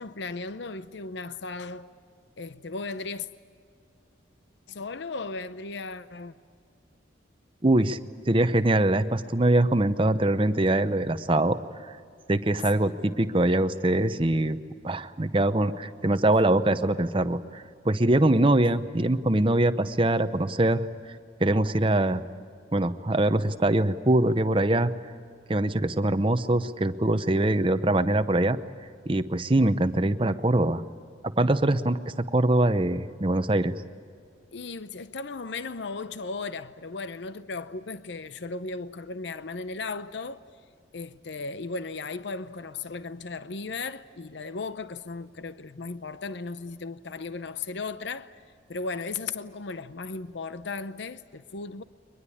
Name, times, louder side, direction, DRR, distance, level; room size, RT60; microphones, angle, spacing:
voice 1, 0.0-1.9 2.4-3.3 4.7-6.3 12.7-12.9 34.5-40.4 40.9-48.4 48.7-51.8, left 4 dB, 65° left, 0.7 m, -36 dB
voice 2, 7.6-8.0 8.3-12.0 12.3-14.6 14.8-20.9 21.4-22.2 22.7-24.9 25.5-28.6 29.1-30.8 31.4-32.0 32.3-33.7, right 1 dB, 25° right, 0.8 m, -23 dB
23.0 x 21.0 x 8.6 m
head